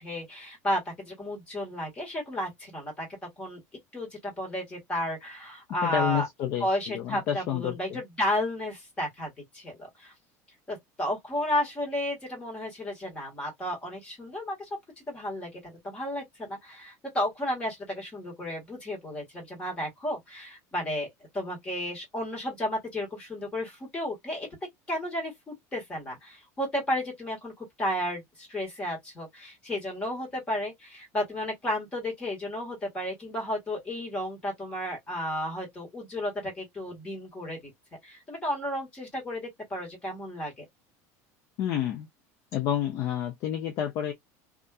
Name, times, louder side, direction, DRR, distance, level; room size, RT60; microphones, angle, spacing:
voice 1, 0.0-3.1 3.4-3.6 3.9-6.3 6.6-10.1 10.7-14.7 15.0-21.1 21.3-24.5 24.9-37.7 38.0-40.6, left 1 dB, 15° left, 1.5 m, -33 dB
voice 2, 5.8-8.0 41.6-42.1 42.5-44.1, left 10 dB, 35° left, 0.5 m, -29 dB
2.7 x 2.4 x 2.3 m
cardioid pair, 180°, 8 cm